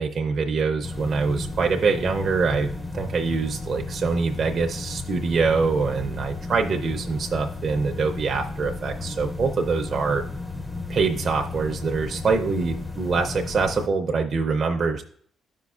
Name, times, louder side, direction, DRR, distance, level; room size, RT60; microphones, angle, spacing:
voice 1, 0.0-10.3 10.9-15.0, right 4 dB, 50° right, 3 dB, 0.5 m, -24 dB
sound 1, 0.8-13.9, left 3 dB, 10° left, 0.5 m, -34 dB
12.5 x 5.1 x 2.4 m, 0.62 s
cardioid pair, 90°, 0 cm